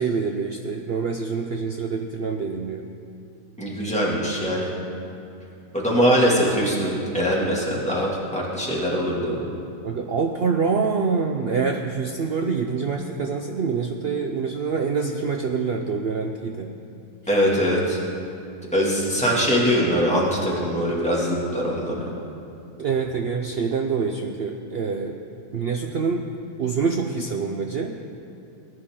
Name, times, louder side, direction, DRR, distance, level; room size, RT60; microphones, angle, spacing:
voice 1, 0.0-2.9 9.8-16.7 22.8-25.2 25.5-26.3 26.6-27.9, right 5 dB, 75° right, 3 dB, 0.5 m, -26 dB
voice 2, 3.6-4.7 5.7-9.4 17.3-18.0 18.7-22.1, equal, 5° left, -5 dB, 2.2 m, -22 dB
18.5 x 9.9 x 3.7 m, 2.6 s
omnidirectional pair, 1.7 m